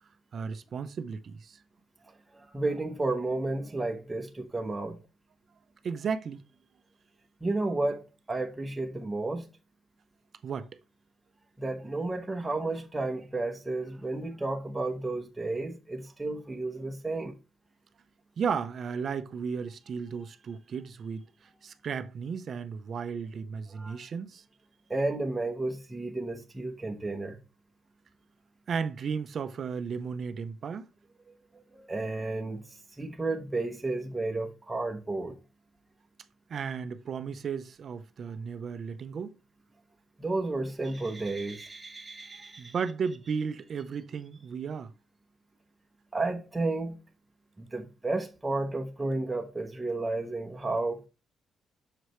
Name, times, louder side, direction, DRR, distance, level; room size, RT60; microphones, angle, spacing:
voice 1, 0.3-1.6 5.8-6.4 10.4-10.7 18.4-21.2 21.6-24.4 28.7-30.9 36.5-39.3 42.6-44.9, right 6 dB, 50° right, 0.6 m, -34 dB
voice 2, 2.0-5.0 7.4-9.5 11.6-17.4 23.7-24.0 24.9-27.4 31.5-35.3 40.2-42.7 46.1-47.0 47.6-51.1, right 2 dB, 10° right, 0.9 m, -32 dB
6.6 x 4.9 x 3.0 m
cardioid pair, 140°, 0 cm